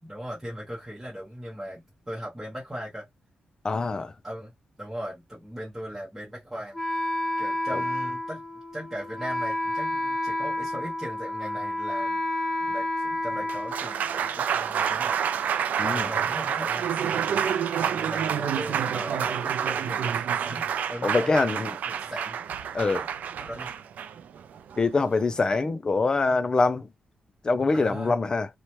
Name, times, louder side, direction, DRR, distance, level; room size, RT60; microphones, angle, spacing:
voice 1, 0.0-3.1 4.2-4.5 4.8-6.8 7.4-8.4 8.7-12.2 12.6-15.1 15.8-16.9 17.1-17.5 17.9-20.2 20.5-22.4 22.8-23.1 23.4-23.7 27.7-28.2, equal, 10° right, 0.9 m, -38 dB
voice 2, 3.6-4.1 7.7-7.8 15.8-16.0 21.0-21.7 22.7-23.0 24.8-26.9 27.4-28.5, left 3 dB, 30° left, 0.4 m, -24 dB
Wind instrument woodwind instrument, 6.7-14.5, left 1 dB, 10° left, 1.2 m, -30 dB
Applause, 13.3-25.6, right 8 dB, 80° right, 0.3 m, -28 dB
2.9 x 2.1 x 2.9 m
wide cardioid pair, 125°, 3 cm